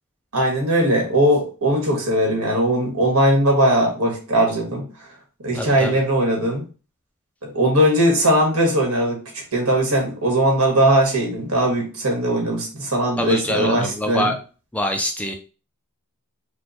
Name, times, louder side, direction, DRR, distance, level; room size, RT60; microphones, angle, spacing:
voice 1, 0.3-4.8 5.4-6.7 7.4-9.2 9.5-14.3, right 1 dB, 75° right, 0 dB, 1.7 m, -19 dB
voice 2, 5.5-6.0 13.2-14.4 14.7-15.3, left 1 dB, 5° left, 4 dB, 0.3 m, -24 dB
4.3 x 2.2 x 4.1 m, 0.35 s
head